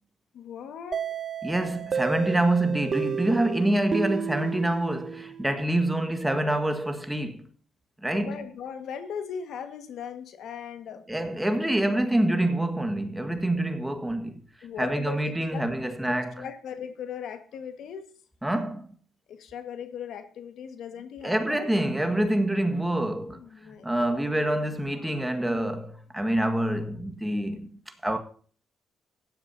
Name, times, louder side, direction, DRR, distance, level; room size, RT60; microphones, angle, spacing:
voice 1, 0.3-1.1 8.1-11.0 14.6-15.6 16.0-18.1 19.3-21.7 23.2-24.3, left 7 dB, 75° left, 1.7 m, -39 dB
sound 1, 0.9-5.6, right 7 dB, 45° right, 0.8 m, -32 dB
voice 2, 1.4-7.5 8.0-8.5 11.1-14.4 14.8-16.4 18.4-18.9 21.2-28.2, right 1 dB, 5° right, 1.6 m, -26 dB
16.5 x 11.5 x 2.8 m
cardioid pair, 90°, 0 cm